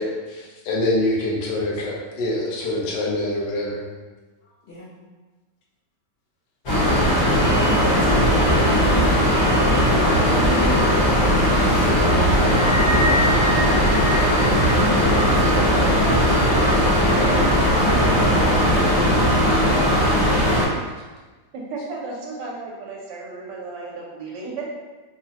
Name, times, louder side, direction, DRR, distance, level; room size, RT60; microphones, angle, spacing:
voice 1, 0.0-3.8, left 1 dB, 80° left, -4 dB, 1.3 m, -25 dB
voice 2, 4.4-4.9 7.2-9.4 9.7-12.9 13.4-15.2 15.6-16.8 17.1-20.5, left 1 dB, 65° left, -9 dB, 0.6 m, -32 dB
sound 1, 6.7-20.6, equal, 45° left, 1.1 m, -18 dB
sound 2, 8.0-14.1, equal, 25° left, 0.7 m, -29 dB
voice 3, 21.5-24.7, right 3 dB, 80° right, -2 dB, 1.2 m, -34 dB
3.5 x 2.0 x 2.7 m, 1.3 s
omnidirectional pair, 1.9 m